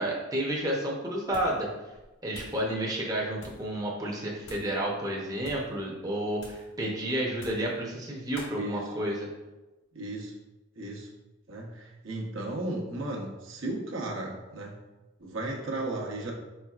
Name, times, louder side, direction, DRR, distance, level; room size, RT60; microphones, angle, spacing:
voice 1, 0.0-1.7 2.2-9.3, right 1 dB, 20° right, -3 dB, 0.6 m, -31 dB
sound 1, 1.3-1.7 1.9-2.6 3.3-3.7 4.4-4.8 5.3-5.7 6.4-6.7 7.3-7.7 8.3-8.6, left 1 dB, 65° left, 1.2 m, -47 dB
voice 2, 8.5-8.9 9.9-10.3 10.8-11.1 11.5-14.8 15.2-16.3, right 2 dB, 75° right, -2 dB, 0.9 m, -35 dB
4.8 x 4.3 x 2.4 m, 1.1 s
head